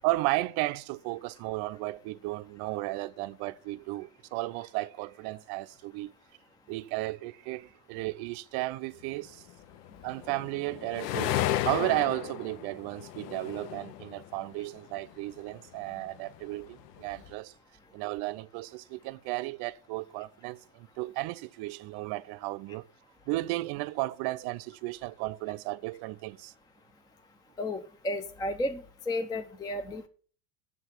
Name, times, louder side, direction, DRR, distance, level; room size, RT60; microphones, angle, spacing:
voice 1, 0.0-6.1 6.7-9.4 10.0-11.4 11.6-17.5 17.9-22.9 23.3-26.5, right 19 dB, 50° right, 0.6 m, -34 dB
sound 1, 9.5-15.2 15.6-17.3, left 14 dB, 70° left, 0.6 m, -34 dB
voice 2, 27.6-30.1, left 1 dB, 10° left, 0.5 m, -33 dB
8.1 x 7.5 x 6.0 m
supercardioid pair, 110°, 50 cm